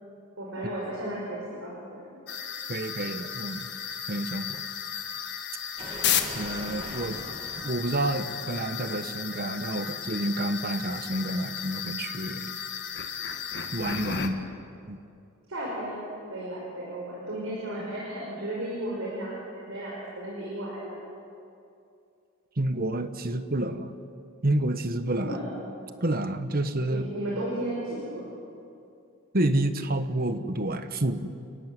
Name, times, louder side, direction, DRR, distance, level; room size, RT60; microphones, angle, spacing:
voice 1, 0.4-2.0 14.4-14.5 15.5-16.0 16.3-21.0 25.2-25.6 26.9-28.3, right 1 dB, 70° right, -4 dB, 5.6 m, -34 dB
sound 1, 2.3-14.3, left 8 dB, 50° left, 1.6 m, -34 dB
voice 2, 2.7-3.7 4.1-4.6 6.3-7.2 7.6-12.5 13.7-14.4 14.9-15.0 22.6-23.9 24.4-25.4 26.0-27.0 29.3-31.3, right 1 dB, 45° right, 10 dB, 1.2 m, -29 dB
sound 2, 5.8-10.5, right 1 dB, 25° right, 1.9 m, -43 dB
30.0 x 14.5 x 9.2 m, 2.5 s
head